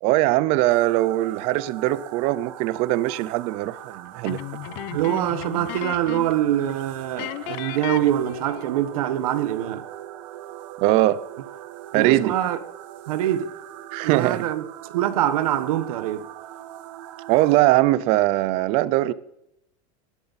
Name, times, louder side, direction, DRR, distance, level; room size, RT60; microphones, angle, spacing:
voice 1, 0.0-4.4 4.7-4.9 10.8-11.2 11.9-12.3 13.9-14.5 17.3-19.1, right 16 dB, 35° right, 0.5 m, -21 dB
sound 1, 0.7-17.6, right 12 dB, 65° right, 1.1 m, -41 dB
sound 2, 4.2-6.4 6.7-6.8 7.2-8.8, left 15 dB, 45° left, 0.8 m, -35 dB
voice 2, 4.9-9.8 11.9-12.6 13.0-13.5 14.0-16.3, right 12 dB, 90° right, 1.2 m, -24 dB
19.5 x 10.5 x 4.1 m
supercardioid pair, 175°, 18 cm